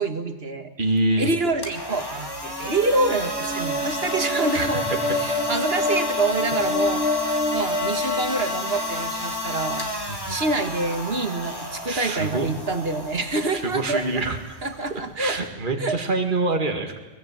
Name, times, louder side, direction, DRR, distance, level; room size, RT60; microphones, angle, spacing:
voice 1, 0.0-0.7 1.2-7.1 7.5-9.9 10.3-14.2 14.6-15.4 15.8-16.0, right 2 dB, 60° right, 7 dB, 2.3 m, -26 dB
voice 2, 0.8-1.3 4.5-5.0 10.1-10.4 11.9-12.5 13.5-14.6 15.2-17.0, right 2 dB, 45° right, 4 dB, 2.3 m, -25 dB
sound 1, 1.5-15.5, left 1 dB, 20° left, 3.1 m, -32 dB
sound 2, 2.2-9.0, left 1 dB, 10° right, 3.1 m, -28 dB
23.0 x 20.5 x 9.1 m, 1.2 s
omnidirectional pair, 1.1 m